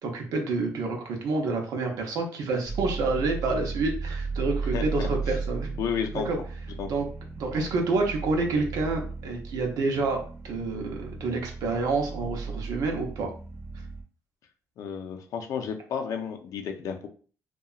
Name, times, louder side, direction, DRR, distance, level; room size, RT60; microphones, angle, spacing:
voice 1, 0.0-5.7 6.3-6.4 6.9-7.0 7.4-10.2 10.4-13.3, right 3 dB, 75° right, 2 dB, 0.6 m, -28 dB
sound 1, 2.6-14.0, right 4 dB, 35° right, 0.8 m, -35 dB
voice 2, 4.7-5.1 5.8-6.3 6.8-6.9 14.8-17.1, left 7 dB, 65° left, 5 dB, 0.5 m, -32 dB
2.8 x 2.3 x 2.3 m, 0.40 s
cardioid pair, 135°, 6 cm